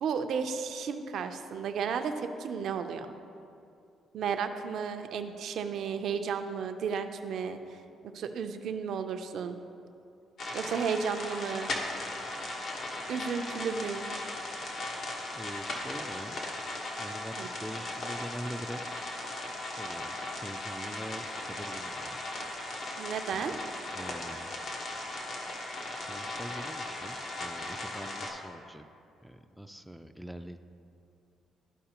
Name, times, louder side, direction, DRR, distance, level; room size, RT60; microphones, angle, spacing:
voice 1, 0.0-3.1 4.1-7.8 8.1-9.6 10.5-11.7 13.1-14.1 17.4-17.5 23.0-23.5, right 6 dB, 70° right, 7 dB, 0.5 m, -33 dB
sound 1, 10.4-28.3, left 2 dB, 65° left, 1.2 m, -37 dB
voice 2, 15.3-16.4 17.0-19.0 19.6-22.2 23.3-23.4 23.9-24.6 26.0-28.9 29.2-30.6, equal, ahead, 7 dB, 0.3 m, -43 dB
12.5 x 4.7 x 2.9 m, 2.6 s
cardioid pair, 90°, 0 cm